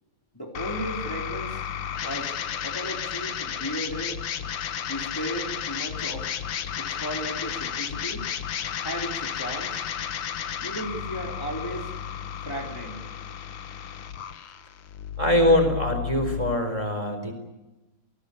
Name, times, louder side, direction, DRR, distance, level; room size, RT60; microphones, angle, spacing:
voice 1, 0.3-1.6 2.0-4.2 4.9-6.3 6.8-8.3 8.8-9.8 10.6-11.9 12.4-13.0 13.4-13.5, equal, 10° left, 0 dB, 3.7 m, -35 dB
sound 1, 0.5-16.6, left 9 dB, 75° left, 2.1 m, -33 dB
voice 2, 15.2-17.3, left 1 dB, 15° right, 7 dB, 4.2 m, -23 dB
28.5 x 20.0 x 8.6 m, 1.0 s
omnidirectional pair, 2.4 m